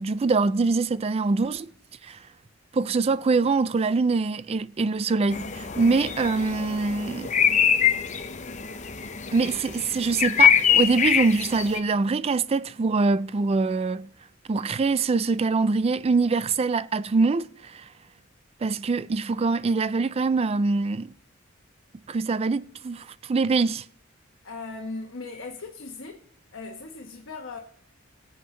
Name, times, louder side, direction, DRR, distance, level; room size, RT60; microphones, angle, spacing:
voice 1, 0.0-1.7 2.1-2.2 2.7-7.3 9.3-14.1 14.5-17.8 18.6-21.1 22.1-23.8, right 4 dB, 30° right, 0.3 m, -24 dB
sound 1, 5.3-11.8, left 8 dB, 35° left, 0.7 m, -24 dB
voice 2, 24.4-26.2 26.5-27.6, left 3 dB, 70° left, 1.2 m, -38 dB
22.5 x 7.9 x 3.2 m
head